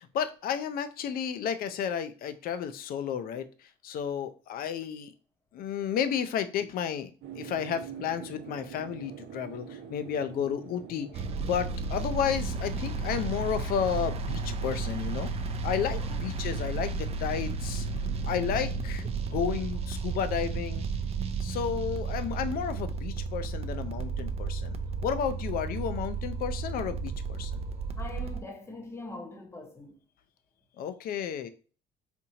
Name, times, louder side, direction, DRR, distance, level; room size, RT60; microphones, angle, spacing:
voice 1, 0.0-3.5 3.8-5.1 5.5-15.3 15.6-17.9 18.3-20.9 21.4-27.6 30.8-31.5, left 8 dB, 60° left, 0.5 m, -32 dB
sound 1, 7.2-16.5 16.7-16.8, right 8 dB, 80° right, 0.8 m, -47 dB
sound 2, 11.1-28.4, right 4 dB, 35° right, 0.4 m, -33 dB
voice 2, 15.9-16.4 28.0-30.0, left 2 dB, 15° left, 0.8 m, -43 dB
4.2 x 2.6 x 2.8 m
cardioid pair, 110°, 17 cm